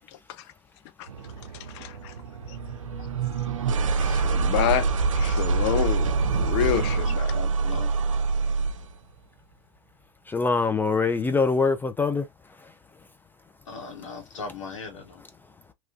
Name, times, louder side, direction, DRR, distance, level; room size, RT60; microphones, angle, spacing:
sound 1, 1.1-8.9, right 4 dB, 85° right, 0.4 m, -25 dB
voice 1, 1.5-2.1 2.5-2.6 4.0-4.9 5.2-7.3, left 11 dB, 55° left, 0.6 m, -28 dB
voice 2, 7.3-7.9 13.6-15.2, left 4 dB, 70° left, 1.2 m, -38 dB
voice 3, 10.2-13.1 13.4-13.5 15.4-15.7, left 4 dB, 10° left, 0.4 m, -26 dB
2.9 x 2.5 x 2.3 m
hypercardioid pair, 90°, 16 cm